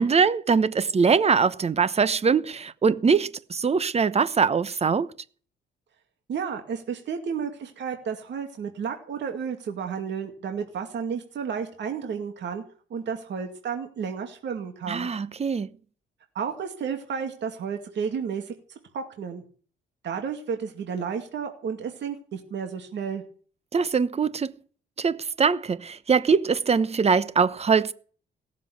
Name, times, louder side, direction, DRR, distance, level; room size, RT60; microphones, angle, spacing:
voice 1, 0.0-5.1 14.9-15.7 23.7-24.5 25.0-27.9, right 5 dB, 30° right, 0.9 m, -22 dB
voice 2, 6.3-12.6 12.9-15.1 16.3-18.5 18.9-19.4 20.0-23.2, right 6 dB, 65° right, 2.4 m, -32 dB
17.5 x 7.6 x 9.5 m
cardioid pair, 90°, 20 cm